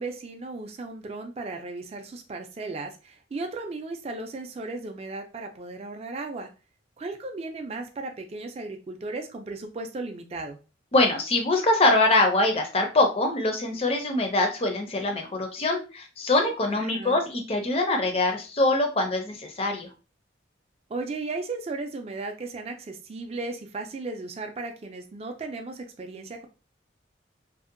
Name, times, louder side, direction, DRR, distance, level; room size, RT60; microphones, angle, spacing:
voice 1, 0.0-6.5 7.0-10.6 16.7-17.2 20.9-26.5, right 3 dB, 30° right, 4 dB, 0.3 m, -35 dB
voice 2, 10.9-19.9, left 2 dB, 30° left, 4 dB, 0.5 m, -23 dB
2.6 x 2.1 x 2.5 m, 0.32 s
head